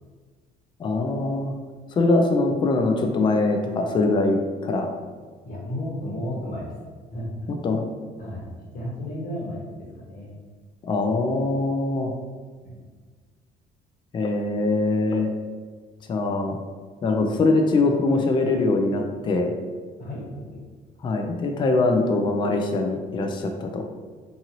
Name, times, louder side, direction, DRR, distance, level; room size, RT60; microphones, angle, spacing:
voice 1, 0.8-1.5 2.0-4.9 7.6-7.8 10.8-12.1 14.1-15.3 16.1-16.6 17.0-19.5 21.0-23.9, left 2 dB, 30° left, 3 dB, 0.3 m, -22 dB
voice 2, 5.4-6.6 7.1-7.3 8.2-10.3 12.6-12.8 20.0-20.6, left 1 dB, 55° left, -5 dB, 1.2 m, -33 dB
2.9 x 2.6 x 2.6 m, 1.5 s
cardioid pair, 110°, 17 cm